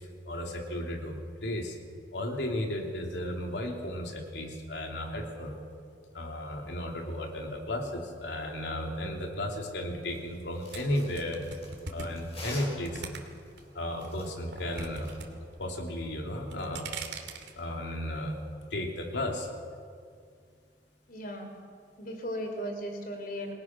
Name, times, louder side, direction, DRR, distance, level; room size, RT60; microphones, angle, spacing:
voice 1, 0.2-1.7 2.1-5.6 6.1-11.4 11.9-13.0 13.7-15.2 15.6-16.9 17.6-18.4 18.7-19.5, left 1 dB, 80° left, 1 dB, 3.3 m, -34 dB
sound 1, 10.1-15.2, left 1 dB, 35° left, 6.5 m, -47 dB
sound 2, 10.7-13.6 14.0-15.3 15.5-16.0 16.4-17.5, right 4 dB, 85° right, 2.7 m, -41 dB
voice 2, 21.1-21.5 22.0-23.5, equal, 55° left, 4 dB, 3.9 m, -36 dB
28.0 x 19.5 x 6.2 m, 2.2 s
head